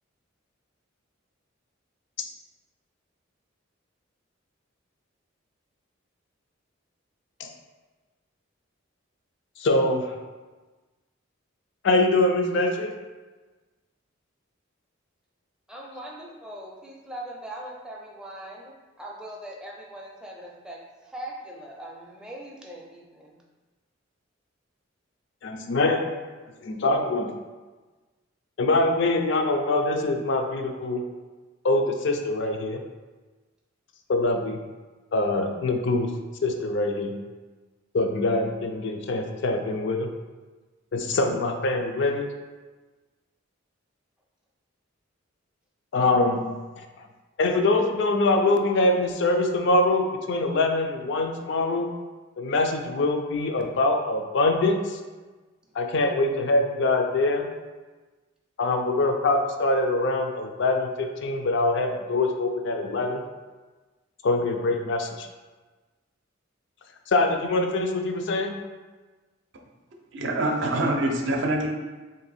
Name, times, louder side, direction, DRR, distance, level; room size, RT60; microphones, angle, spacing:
voice 1, 9.6-10.1 11.8-12.9 25.4-26.1 26.6-27.3 28.6-31.0 31.6-32.8 34.1-34.6 35.1-36.1 36.4-37.1 37.9-40.1 40.9-42.3 45.9-46.5 46.8-46.9 47.4-51.9 52.4-55.0 55.8-57.5 58.6-63.2 64.2-65.3 67.1-68.5, left 2 dB, 60° left, 4 dB, 0.4 m, -24 dB
voice 2, 15.7-23.4, right 1 dB, 5° right, -2 dB, 0.5 m, -41 dB
voice 3, 70.1-71.7, right 1 dB, 60° right, 2 dB, 0.5 m, -25 dB
3.3 x 2.6 x 4.1 m, 1.3 s
head